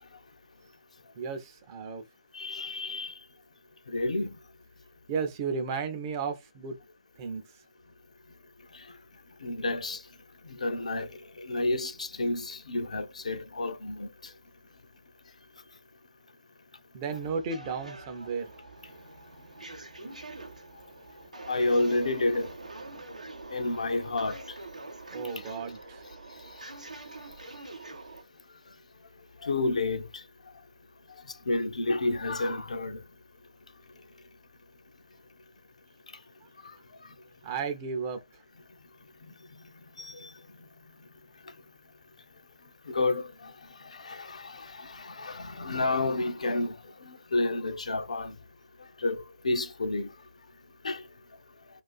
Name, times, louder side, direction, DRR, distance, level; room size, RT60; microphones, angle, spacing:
voice 1, 1.2-2.0 5.1-6.8 7.2-7.4 16.9-18.5 25.1-26.0 37.4-38.2, right 5 dB, 30° right, 0.5 m, -33 dB
voice 2, 2.3-3.1 3.9-4.3 9.4-10.0 10.6-11.1 11.4-14.1 20.0-20.1 21.5-22.5 23.5-24.4 29.4-30.1 31.5-33.0 40.0-40.3 42.9-43.3 43.9-46.8 47.0-48.3 49.0-50.1 50.8-51.0, left 2 dB, 70° left, 0.4 m, -30 dB
sound 1, 17.1-28.2, right 2 dB, 80° right, 0.7 m, -45 dB
2.4 x 2.3 x 2.3 m
figure-of-eight pair, 130°, 4 cm